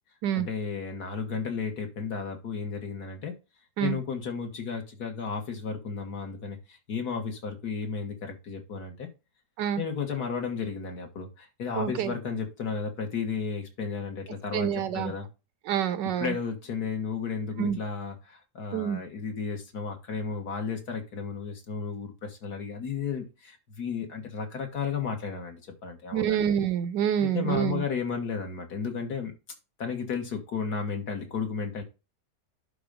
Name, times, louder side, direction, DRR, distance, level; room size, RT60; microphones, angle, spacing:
voice 1, 0.3-3.4 3.8-9.1 9.8-15.3 16.2-26.4 27.2-29.3 29.8-31.8, left 5 dB, 65° left, 2.1 m, -33 dB
voice 2, 11.7-12.1 14.5-15.1 15.7-16.4 17.6-17.8 18.7-19.0 26.1-27.8, right 9 dB, 90° right, 1.5 m, -27 dB
11.0 x 3.9 x 5.0 m
omnidirectional pair, 1.8 m